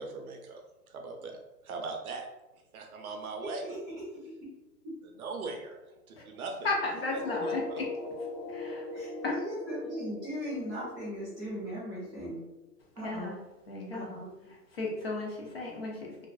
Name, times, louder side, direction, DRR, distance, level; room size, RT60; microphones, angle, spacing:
voice 1, 0.0-1.4 1.6-2.3 2.7-3.8 5.0-5.8 6.1-6.7 7.1-7.8, right 3 dB, 60° right, 3 dB, 0.5 m, -40 dB
voice 2, 6.6-7.9 8.5-8.9 9.2-9.4 13.0-13.4 13.7-14.2 14.5-16.3, left 3 dB, 40° left, -1 dB, 0.4 m, -34 dB
sound 1, 7.2-12.7, left 2 dB, 75° left, 1.3 m, -40 dB
voice 3, 8.9-12.5 13.0-13.3 13.9-14.3, equal, 5° right, -17 dB, 0.6 m, -38 dB
2.5 x 2.3 x 2.3 m, 1.0 s
hypercardioid pair, 165°, 49 cm